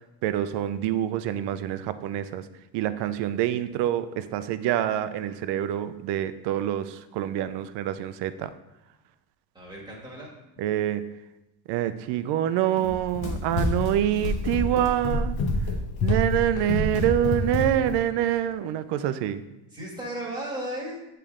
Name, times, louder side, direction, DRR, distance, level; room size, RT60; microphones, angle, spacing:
voice 1, 0.2-2.5 2.7-8.5 10.6-11.1 11.7-15.4 16.0-19.4, right 11 dB, 65° right, 12 dB, 0.5 m, -26 dB
voice 2, 9.5-10.3 19.7-21.0, right 1 dB, 10° right, -4 dB, 1.4 m, -35 dB
Run, 12.8-18.0, left 2 dB, 55° left, 0.9 m, -27 dB
8.3 x 3.3 x 3.6 m, 0.97 s
cardioid pair, 155°, 44 cm